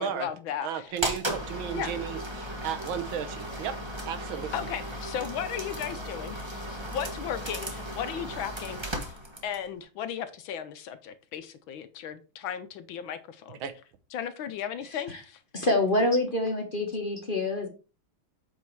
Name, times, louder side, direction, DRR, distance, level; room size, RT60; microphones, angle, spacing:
voice 1, 0.0-0.9 1.7-1.9 4.5-9.1 9.4-13.6 14.1-15.4, left 9 dB, 70° left, 11 dB, 1.4 m, -36 dB
voice 2, 0.6-3.7 4.1-4.7 13.6-13.7, right 9 dB, 70° right, 10 dB, 1.5 m, -34 dB
sound 1, 1.0-9.7, right 1 dB, 20° right, 0.9 m, -36 dB
voice 3, 15.5-17.7, left 2 dB, 30° left, 3 dB, 1.1 m, -26 dB
8.5 x 4.3 x 4.6 m, 0.34 s
omnidirectional pair, 2.4 m